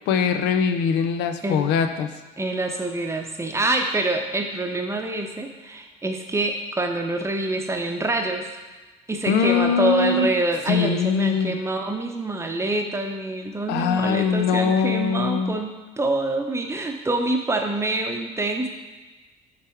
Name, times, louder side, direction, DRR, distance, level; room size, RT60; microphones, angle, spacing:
voice 1, 0.1-2.1 9.3-10.3 10.7-11.5 13.7-15.5, left 6 dB, 85° left, 8 dB, 0.5 m, -22 dB
voice 2, 2.4-8.5 9.1-18.7, right 2 dB, 15° right, 3 dB, 0.7 m, -26 dB
7.1 x 3.4 x 4.5 m, 1.3 s
cardioid pair, 110°, 17 cm